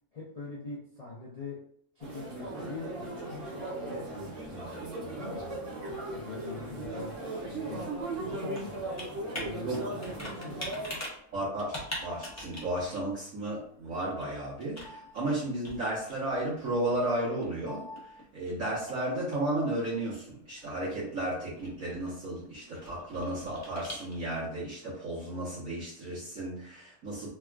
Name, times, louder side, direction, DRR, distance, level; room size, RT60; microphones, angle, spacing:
voice 1, 0.1-1.6 1.9-7.2 7.5-10.9, left 3 dB, 80° left, -5 dB, 0.3 m, -43 dB
sound 1, 2.0-10.9, right 2 dB, 90° right, 1.5 m, -38 dB
Computer keyboard, 6.2-24.5, equal, 20° left, 0.5 m, -46 dB
voice 2, 11.3-27.3, right 1 dB, 60° right, -10 dB, 1.3 m, -33 dB
3.4 x 2.4 x 2.2 m, 0.66 s
omnidirectional pair, 1.6 m